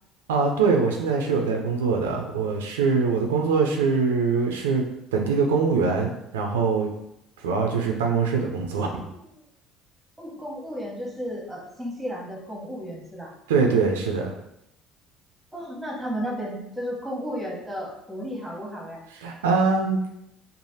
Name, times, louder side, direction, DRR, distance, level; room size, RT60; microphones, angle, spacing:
voice 1, 0.3-4.9 5.1-6.9 7.4-9.0 13.5-14.3 19.2-20.0, right 4 dB, 85° right, 2 dB, 0.3 m, -23 dB
voice 2, 8.8-9.3 10.2-13.3 15.5-19.0, equal, 5° right, -2 dB, 1.0 m, -34 dB
3.2 x 2.0 x 2.7 m, 0.82 s
hypercardioid pair, 65°, 0 cm